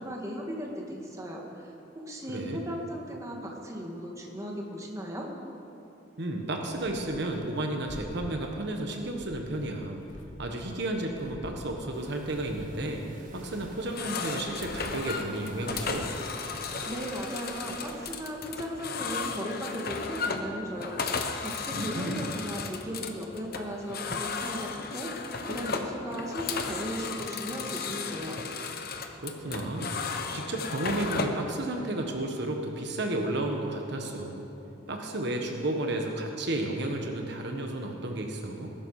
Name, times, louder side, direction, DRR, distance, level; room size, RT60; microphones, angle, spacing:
voice 1, 0.0-5.3 16.9-28.4, equal, 15° right, 0 dB, 1.8 m, -37 dB
voice 2, 2.3-2.6 6.2-10.0 10.4-13.0 13.3-16.1 21.7-22.3 29.2-30.0 30.3-34.5 34.9-38.7, right 1 dB, 60° right, 2 dB, 1.4 m, -32 dB
sound 1, 6.5-7.4 7.7-8.6 8.9-10.8 11.1-13.0 13.3-18.3, left 1 dB, 75° left, 1.3 m, -48 dB
sound 2, 11.9-18.1, right 2 dB, 45° right, 1.5 m, -49 dB
sound 3, 13.8-31.5, left 5 dB, 55° left, 1.1 m, -35 dB
20.0 x 11.5 x 4.9 m, 2.9 s
head